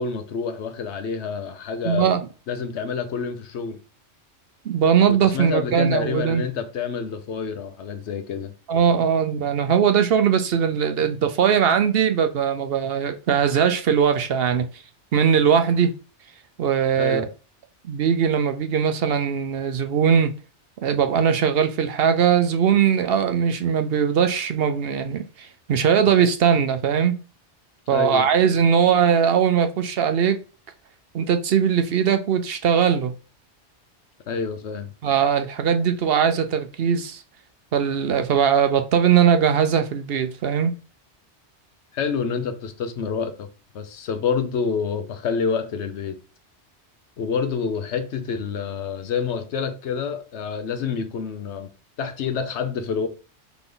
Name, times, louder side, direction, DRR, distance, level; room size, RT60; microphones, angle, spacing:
voice 1, 0.0-2.1 2.5-3.8 5.1-8.5 16.9-17.3 27.9-28.3 34.3-34.9 41.9-43.5 43.7-46.2 47.2-51.7 52.0-53.1, left 6 dB, 75° left, 1.0 m, -28 dB
voice 2, 1.8-2.3 4.6-6.4 8.7-14.7 15.1-15.9 16.6-17.2 17.8-20.3 20.8-27.1 27.9-30.4 31.1-33.1 35.0-37.2 37.7-40.7, right 7 dB, 65° right, 0.8 m, -20 dB
4.0 x 3.4 x 3.8 m
omnidirectional pair, 1.2 m